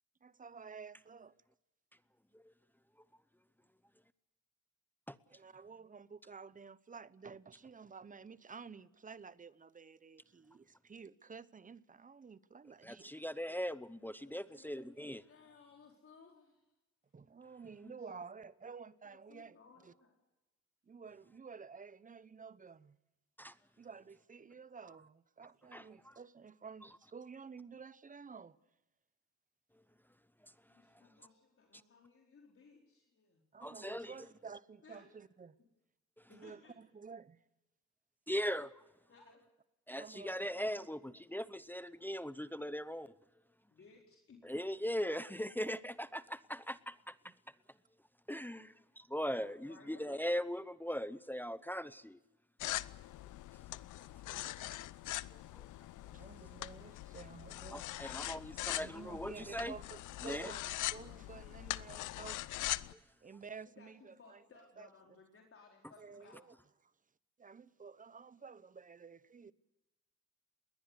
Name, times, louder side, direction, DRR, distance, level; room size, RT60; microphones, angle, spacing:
voice 1, 0.2-1.4 5.3-13.2 17.1-19.6 19.8-19.9 20.8-23.0 23.8-28.6 33.5-35.6 36.3-37.4 40.0-40.7 47.2-47.3 56.1-57.8 58.8-62.4 63.2-64.4 64.8-64.9 66.0-66.5 66.8-66.9 67.4-69.5, right 5 dB, 25° right, 0.9 m, -52 dB
voice 2, 12.8-15.2 23.4-23.5 25.7-25.8 33.6-34.1 38.3-38.7 39.9-43.1 44.4-47.1 48.3-52.2 55.5-55.7 57.7-59.7 60.2-60.5, equal, 5° left, 0.7 m, -39 dB
voice 3, 14.2-16.6 19.3-20.1 30.7-33.4 34.0-34.2 34.8-35.1 36.3-36.7 39.1-39.4 43.7-44.4 49.3-50.2 63.8-66.4, left 5 dB, 45° left, 4.5 m, -61 dB
sound 1, 52.6-62.9, left 15 dB, 80° left, 0.7 m, -42 dB
21.5 x 18.5 x 8.2 m
cardioid pair, 90°, 30 cm